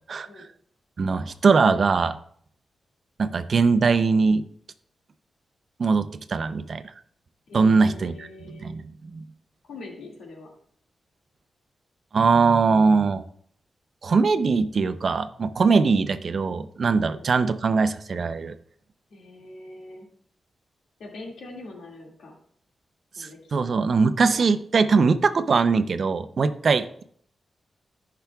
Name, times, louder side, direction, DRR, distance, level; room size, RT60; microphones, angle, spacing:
voice 1, 0.1-0.4 1.0-2.2 3.2-4.4 5.8-6.8 7.5-8.3 8.6-9.2 12.1-13.2 14.0-18.5 23.2-27.0, right 4 dB, 55° right, 11 dB, 0.6 m, -21 dB
voice 2, 7.5-8.7 9.7-10.5 17.0-17.2 19.1-20.1 21.0-22.3 23.2-23.8, left 2 dB, 90° left, -1 dB, 2.2 m, -43 dB
14.0 x 5.8 x 2.4 m, 0.62 s
cardioid pair, 95°, 0 cm